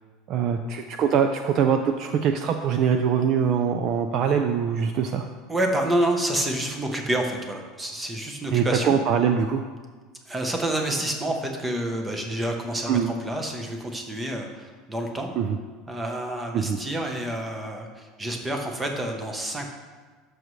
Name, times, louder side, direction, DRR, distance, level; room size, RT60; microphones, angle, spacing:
voice 1, 0.3-5.3 8.5-9.7 12.9-13.1 15.4-15.6 16.5-16.8, right 7 dB, 35° right, 6 dB, 0.4 m, -23 dB
voice 2, 5.5-9.0 10.3-15.3 15.9-19.7, right 1 dB, 10° right, 2 dB, 0.9 m, -28 dB
13.0 x 6.2 x 3.2 m, 1.4 s
cardioid pair, 170°, 0 cm